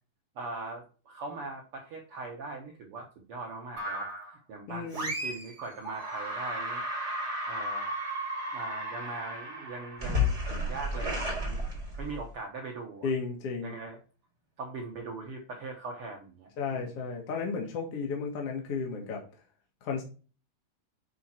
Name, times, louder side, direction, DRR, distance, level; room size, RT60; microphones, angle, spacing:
voice 1, 0.3-6.8 7.5-8.0 8.5-11.6 12.0-13.1 13.6-14.0 14.6-16.8, right 3 dB, 80° right, 1 dB, 1.2 m, -41 dB
sound 1, 3.8-4.3 4.9-5.5 5.8-12.3, left 1 dB, 20° right, 3.5 m, -33 dB
voice 2, 4.7-5.1 13.0-13.8 16.6-19.3 19.8-20.0, left 5 dB, 55° left, 1 dB, 1.8 m, -33 dB
9.3 x 4.4 x 4.3 m, 0.36 s
omnidirectional pair, 4.5 m